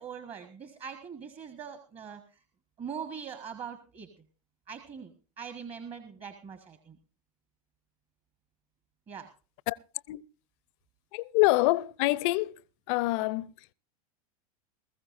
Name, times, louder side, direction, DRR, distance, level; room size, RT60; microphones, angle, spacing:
voice 1, 0.0-2.4 2.8-4.2 4.7-7.0 9.1-9.3, right 7 dB, 30° right, 1.5 m, -42 dB
voice 2, 11.1-12.6 12.9-13.7, left 20 dB, 50° left, 0.5 m, -26 dB
20.5 x 14.5 x 2.6 m
hypercardioid pair, 95°, 20 cm